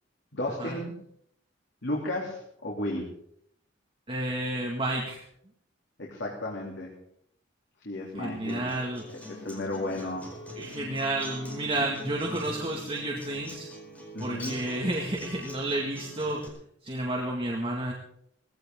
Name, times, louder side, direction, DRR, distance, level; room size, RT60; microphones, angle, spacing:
voice 1, 0.3-0.9 1.8-3.1 6.0-6.9 7.8-8.7 9.3-10.3 14.1-14.6, left 1 dB, 65° left, -3 dB, 3.2 m, -33 dB
voice 2, 4.1-5.2 8.1-9.3 10.6-13.7 14.2-16.5 16.8-17.9, right 1 dB, 30° right, -1 dB, 2.0 m, -31 dB
Acoustic guitar, 8.5-16.5, equal, 10° left, 4.9 m, -43 dB
20.0 x 16.0 x 3.8 m, 0.69 s
head